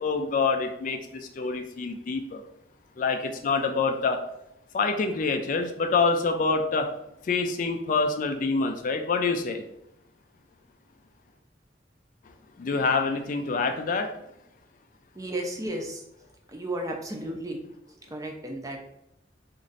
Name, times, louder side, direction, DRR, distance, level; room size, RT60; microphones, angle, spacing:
voice 1, 0.0-2.4 3.0-4.2 4.7-6.9 7.2-9.6 12.6-14.1, left 4 dB, 45° left, 6 dB, 0.3 m, -26 dB
voice 2, 15.2-16.0 16.5-17.6 18.1-18.8, right 1 dB, 20° right, 1 dB, 0.5 m, -33 dB
3.1 x 2.5 x 3.9 m, 0.82 s
head